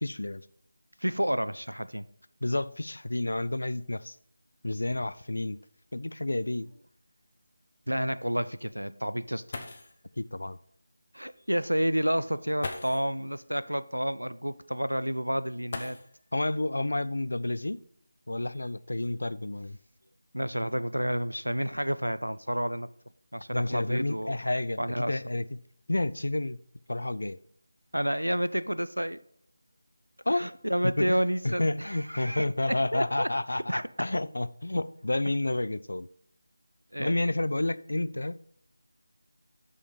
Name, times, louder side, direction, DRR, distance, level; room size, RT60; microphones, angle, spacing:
voice 1, 0.0-0.5 2.4-4.2 4.6-5.6 5.9-6.7 10.2-10.6 16.3-17.8 18.3-19.8 23.5-25.6 25.9-26.6 26.9-27.4 30.3-30.5 30.8-31.2 31.4-36.1 37.0-38.4, left 2 dB, 60° left, 0.4 m, -30 dB
voice 2, 1.0-2.1 7.9-9.4 11.1-16.0 20.3-22.9 23.3-24.4 24.8-25.2 27.9-29.2 30.3-33.3 33.7-33.9 36.9-37.1, equal, 85° right, 0.4 m, -30 dB
sound 1, 5.6-5.7 6.1-6.2 6.8-6.9 9.2-9.3 9.5-10.1 11.3-11.4 12.6-13.2 15.7-16.4 17.8-17.9 18.6-20.1 20.8-21.1 21.5-21.9, left 3 dB, 35° left, 0.8 m, -42 dB
6.4 x 5.5 x 5.3 m
figure-of-eight pair, 165°, 0 cm